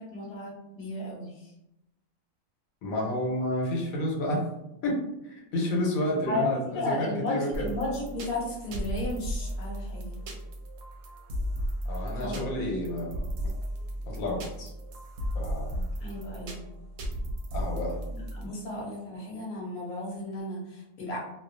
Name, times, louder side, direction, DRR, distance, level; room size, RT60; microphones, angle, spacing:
voice 1, 0.0-1.5 6.3-6.5 6.7-10.2 12.2-12.4 16.0-16.6 18.1-21.2, left 2 dB, 45° left, -4 dB, 0.8 m, -34 dB
voice 2, 2.8-4.4 4.8-7.7 11.8-13.5 14.1-14.7 15.3-15.9 17.5-18.0, left 1 dB, 85° left, -2 dB, 1.1 m, -30 dB
sound 1, 7.5-18.5, equal, 70° right, 0.9 m, -35 dB
2.3 x 2.3 x 2.5 m, 0.88 s
omnidirectional pair, 1.4 m